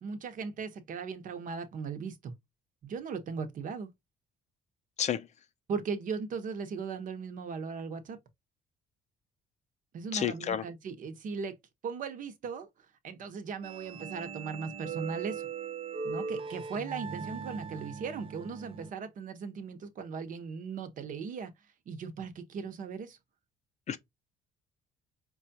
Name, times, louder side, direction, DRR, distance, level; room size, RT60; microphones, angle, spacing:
voice 1, 0.0-2.3 2.8-3.9 5.7-8.2 9.9-11.6 11.8-12.7 13.0-15.5 16.0-21.5 21.9-23.2, right 5 dB, 50° right, 0.9 m, -38 dB
voice 2, 10.1-10.6 23.9-24.0, left 9 dB, 45° left, 0.5 m, -30 dB
sound 1, 13.6-18.9, right 5 dB, 30° right, 0.6 m, -39 dB
4.8 x 2.3 x 2.7 m
cardioid pair, 110°, 17 cm